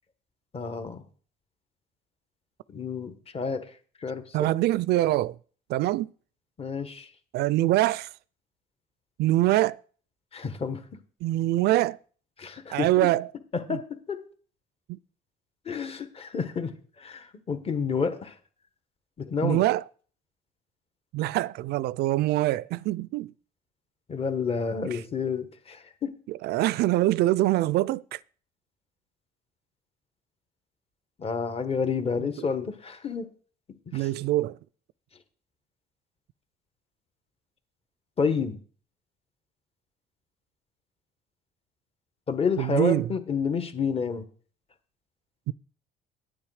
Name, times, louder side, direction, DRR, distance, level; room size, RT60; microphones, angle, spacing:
voice 1, 0.5-1.0 2.7-3.6 4.0-4.5 6.6-7.1 10.3-10.8 12.4-13.1 13.5-14.2 15.6-16.7 17.0-18.4 19.2-19.7 24.1-26.1 31.2-33.3 33.9-34.1 38.2-38.6 42.3-44.2, left 5 dB, 35° left, 1.4 m, -30 dB
voice 2, 4.3-5.4 5.7-6.1 7.3-8.1 9.2-9.8 11.2-12.0 12.7-13.3 13.7-13.8 14.9-15.0 19.4-19.8 21.1-23.3 24.9-25.0 26.3-28.2 32.2-32.3 33.9-34.6 42.6-43.1 45.5-45.6, right 16 dB, 75° right, 0.4 m, -24 dB
10.0 x 8.8 x 4.9 m
cardioid pair, 110°, 17 cm